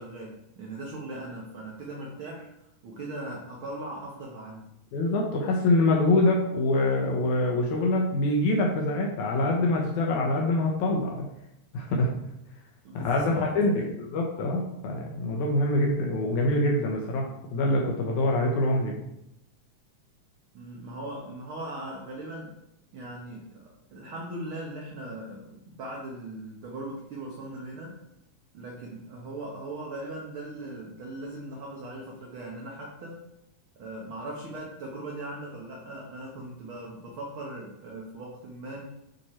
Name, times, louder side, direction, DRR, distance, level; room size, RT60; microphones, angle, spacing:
voice 1, 0.0-2.5 2.8-4.7 12.8-13.9 20.5-22.6 22.9-28.0 28.5-33.2 33.8-38.9, right 1 dB, 55° right, -2 dB, 1.6 m, -39 dB
voice 2, 4.9-11.3 11.7-12.3 12.9-19.0, left 2 dB, 75° left, -1 dB, 2.4 m, -25 dB
9.5 x 4.3 x 4.4 m, 0.84 s
omnidirectional pair, 3.5 m